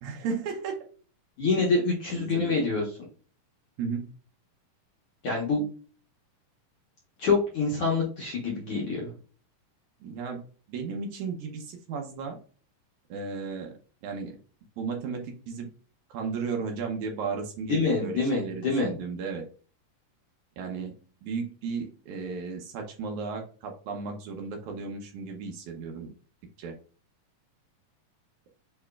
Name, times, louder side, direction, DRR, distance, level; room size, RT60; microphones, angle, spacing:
voice 1, 0.0-0.9 2.1-2.6 3.8-4.1 10.0-12.4 13.1-13.7 14.0-14.4 14.8-15.7 16.1-19.4 20.6-20.9 21.2-26.1 26.6-26.7, right 5 dB, 75° right, 2 dB, 1.8 m, -34 dB
voice 2, 1.4-2.8 5.2-5.6 7.2-9.1 17.7-18.9, left 3 dB, 70° left, -3 dB, 1.4 m, -26 dB
6.8 x 2.9 x 2.3 m, 0.39 s
omnidirectional pair, 4.1 m